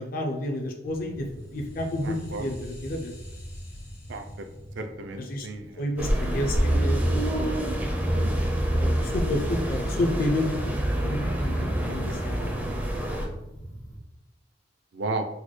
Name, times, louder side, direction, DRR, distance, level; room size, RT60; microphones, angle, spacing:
voice 1, 0.0-3.3 5.2-5.5 5.8-7.5 7.8-8.4 8.7-10.8 11.0-13.0, left 1 dB, 50° left, 3 dB, 0.4 m, -31 dB
sound 1, 0.8-14.0, equal, 75° left, 1.2 m, -43 dB
voice 2, 2.0-2.4 4.1-4.5 4.8-5.7 8.1-8.4 11.9-12.2 14.9-15.3, right 3 dB, 70° right, 6 dB, 0.4 m, -34 dB
sound 2, 6.0-13.3, right 1 dB, 10° right, 0.4 m, -26 dB
4.0 x 2.2 x 3.1 m, 0.93 s
head